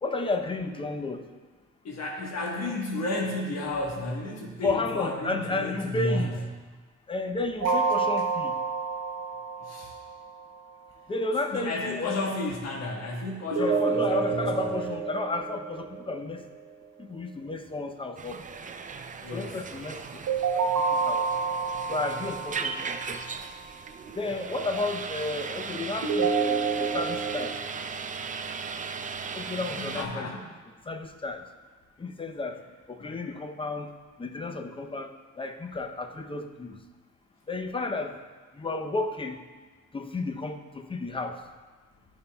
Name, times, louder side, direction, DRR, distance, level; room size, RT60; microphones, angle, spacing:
voice 1, 0.0-1.2 4.6-6.3 7.1-8.5 11.1-12.2 13.5-16.5 17.0-18.4 19.3-20.2 20.5-20.7 21.0-21.2 21.9-22.8 24.1-27.6 29.3-30.3 30.9-31.4 32.0-32.6 32.9-33.9 34.2-36.8 37.5-38.1 38.5-39.4 39.9-41.4, left 3 dB, 20° left, 6 dB, 0.6 m, -32 dB
voice 2, 1.8-6.5 7.6-7.7 9.6-10.0 11.5-14.9 19.1-19.6 29.6-30.4 33.0-33.1, left 2 dB, 60° left, -2 dB, 1.3 m, -32 dB
sound 1, 7.6-10.5 13.5-16.5 20.3-23.5 26.0-27.5, right 5 dB, 70° right, 1.0 m, -28 dB
sound 2, 18.2-30.0, right 5 dB, 25° right, 0.4 m, -37 dB
12.5 x 5.4 x 2.3 m, 1.4 s
cardioid pair, 90°, 30 cm